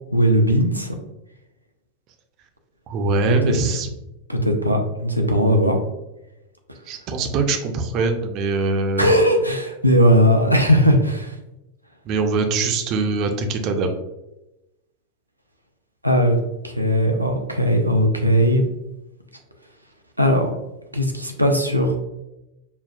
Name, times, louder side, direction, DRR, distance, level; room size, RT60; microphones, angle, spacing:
voice 1, 0.1-0.9 3.3-3.5 4.3-5.8 9.0-11.3 16.0-16.4 16.6-18.6 20.2-20.5 20.9-21.9, equal, 90° right, 3 dB, 0.5 m, -18 dB
voice 2, 2.9-3.9 6.9-9.1 12.1-13.9, right 3 dB, 40° right, 6 dB, 0.5 m, -22 dB
5.1 x 2.3 x 2.3 m, 0.95 s
figure-of-eight pair, 90°, 0 cm